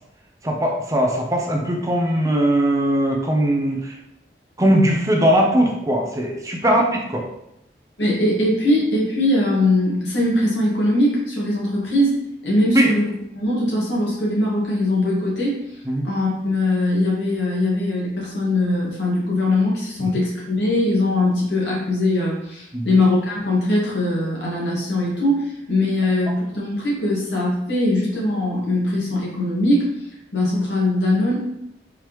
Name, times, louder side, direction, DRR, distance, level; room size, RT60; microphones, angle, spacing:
voice 1, 0.4-4.0 4.6-7.2 12.7-12.9 15.9-16.1 22.7-22.9, right 1 dB, 20° right, 0 dB, 0.7 m, -19 dB
voice 2, 8.0-15.6 16.0-29.9 30.3-31.5, left 1 dB, 85° left, -5 dB, 1.8 m, -21 dB
4.7 x 3.6 x 3.1 m, 0.82 s
head